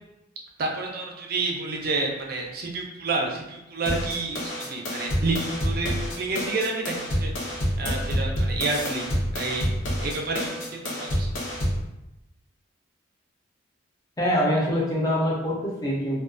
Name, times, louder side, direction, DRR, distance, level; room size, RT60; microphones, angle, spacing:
voice 1, 0.6-9.1 9.3-9.6 10.0-11.3, right 3 dB, 50° right, 0 dB, 0.4 m, -29 dB
sound 1, 3.9-11.9, equal, 75° left, 0.7 m, -28 dB
voice 2, 14.2-16.2, equal, 20° left, -5 dB, 0.6 m, -24 dB
2.3 x 2.3 x 2.4 m, 0.92 s
head